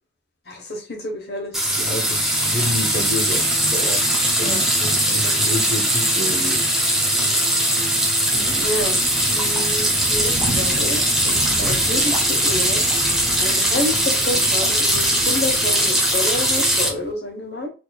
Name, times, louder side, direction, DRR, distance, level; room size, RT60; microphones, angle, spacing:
voice 1, 0.5-2.0 4.4-4.7 5.2-5.4 7.1-7.4 8.6-9.0 9.3-12.8 13.4-17.7, left 2 dB, 65° left, 1.2 m, -29 dB
sound 1, 1.5-16.9, right 1 dB, ahead, 0.7 m, -20 dB
voice 2, 1.8-4.0 4.4-6.6 8.5-8.7, left 1 dB, 45° left, 0.7 m, -29 dB
Thunder / Rain, 8.3-17.1, right 1 dB, 70° right, 0.7 m, -34 dB
4.4 x 2.8 x 2.3 m
head